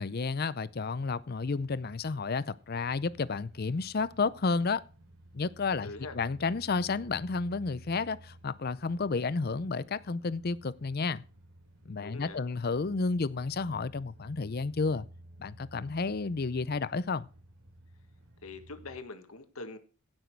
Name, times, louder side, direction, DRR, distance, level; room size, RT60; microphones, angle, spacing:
voice 1, 0.0-4.8 5.3-5.9 6.1-11.2 11.9-15.1 15.4-17.3, left 4 dB, 45° left, 0.5 m, -31 dB
sound 1, 0.7-19.0, right 1 dB, 80° right, 3.8 m, -54 dB
voice 2, 5.8-6.2 12.0-12.4 18.4-19.8, left 3 dB, 75° left, 1.5 m, -43 dB
16.0 x 6.3 x 4.6 m
head